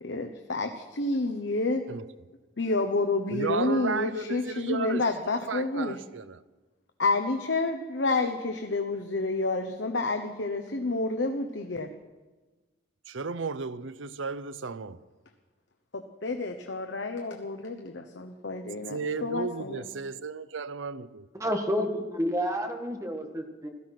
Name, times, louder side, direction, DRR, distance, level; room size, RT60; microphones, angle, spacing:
voice 1, 0.0-1.8 2.6-6.0 7.0-11.9 15.9-19.9, left 3 dB, 75° left, 1.1 m, -29 dB
voice 2, 3.3-5.0 5.5-6.4 13.1-15.0 18.9-21.2, right 4 dB, 85° right, 0.7 m, -34 dB
voice 3, 21.4-23.7, equal, 15° right, 1.6 m, -29 dB
17.0 x 14.0 x 6.0 m
head